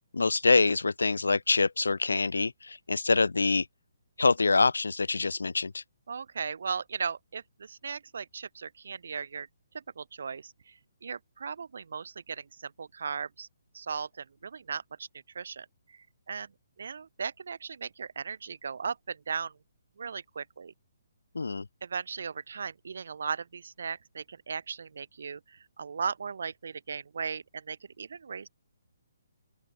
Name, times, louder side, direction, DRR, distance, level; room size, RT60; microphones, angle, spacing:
voice 1, 0.1-3.7 4.2-5.8 21.3-21.7, left 3 dB, 75° left, 0.5 m, -25 dB
voice 2, 6.1-9.5 9.7-13.5 13.7-15.1 15.3-16.5 16.8-19.6 20.0-20.7 21.8-28.5, right 6 dB, 65° right, 2.6 m, -37 dB
open air
figure-of-eight pair, 135°, 0 cm